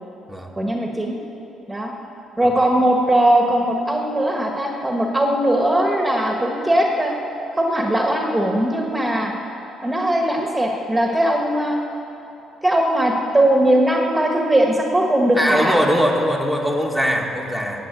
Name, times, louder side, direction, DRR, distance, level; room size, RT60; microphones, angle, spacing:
voice 1, 0.6-1.1 1.7-1.9 2.4-7.1 7.6-9.3 9.8-11.8 12.6-15.8, right 1 dB, 10° right, 1 dB, 1.5 m, -19 dB
voice 2, 15.3-17.8, equal, 10° left, 0 dB, 1.6 m, -21 dB
15.0 x 7.8 x 9.2 m, 2.9 s
cardioid pair, 110°, 0 cm